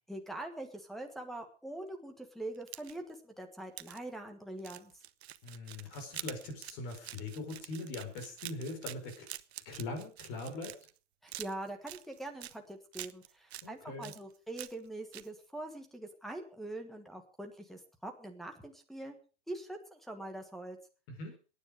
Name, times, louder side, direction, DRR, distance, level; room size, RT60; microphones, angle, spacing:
voice 1, 0.1-4.9 11.2-19.1 19.5-20.8, right 1 dB, ahead, 1 dB, 1.5 m, -43 dB
sound 1, 2.5-3.1 3.8-4.0 4.6-11.0 11.3-12.6 12.9-13.7 14.0-14.9 15.1-15.3, right 13 dB, 65° right, 0.9 m, -46 dB
voice 2, 5.4-9.3 9.6-10.7 13.6-14.1 21.1-21.4, left 2 dB, 35° left, 6 dB, 4.9 m, -41 dB
22.0 x 9.8 x 5.0 m, 0.36 s
hypercardioid pair, 155°, 35 cm